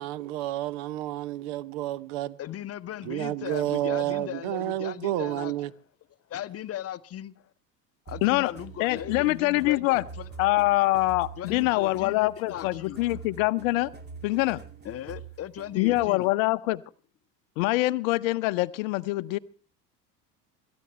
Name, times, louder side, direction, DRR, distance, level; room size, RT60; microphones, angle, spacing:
voice 1, 0.0-2.4 3.0-5.7, right 14 dB, 50° right, 1.0 m, -30 dB
voice 2, 2.4-5.5 6.3-7.3 8.1-10.3 11.4-13.2 14.8-16.3, left 11 dB, 30° left, 0.9 m, -38 dB
sound 1, 8.1-16.3, right 5 dB, 20° right, 2.4 m, -45 dB
voice 3, 8.2-8.5 8.8-10.0 10.4-13.9 14.2-14.6 15.7-16.8 17.6-19.4, left 19 dB, 55° left, 0.8 m, -24 dB
26.5 x 14.0 x 3.3 m
figure-of-eight pair, 75°, 49 cm